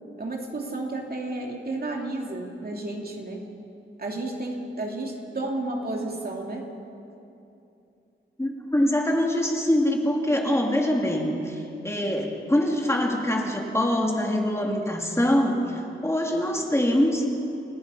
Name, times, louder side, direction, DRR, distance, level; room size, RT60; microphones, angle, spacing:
voice 1, 0.2-3.5 4.0-6.7 10.7-10.8, right 2 dB, 50° right, 0 dB, 2.8 m, -32 dB
voice 2, 8.4-17.3, left 1 dB, 15° left, 0 dB, 2.7 m, -24 dB
29.5 x 16.5 x 5.7 m, 2.7 s
wide cardioid pair, 105°, 21 cm